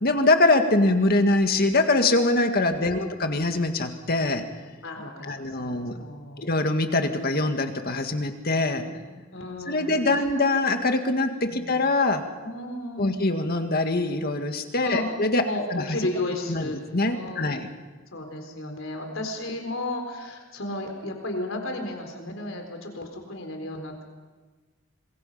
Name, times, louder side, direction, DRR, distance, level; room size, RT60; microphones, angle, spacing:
voice 1, 0.0-4.4 5.2-6.0 6.4-8.9 9.7-12.3 13.0-16.0 16.5-17.7, left 2 dB, 50° left, 6 dB, 1.9 m, -23 dB
voice 2, 2.7-3.1 4.8-6.4 8.8-9.1 9.3-10.2 11.4-11.7 12.4-13.2 14.8-15.1 15.4-16.8 17.1-17.5 18.1-24.0, left 1 dB, 75° left, 4 dB, 4.2 m, -34 dB
26.0 x 21.5 x 5.7 m, 1.3 s
head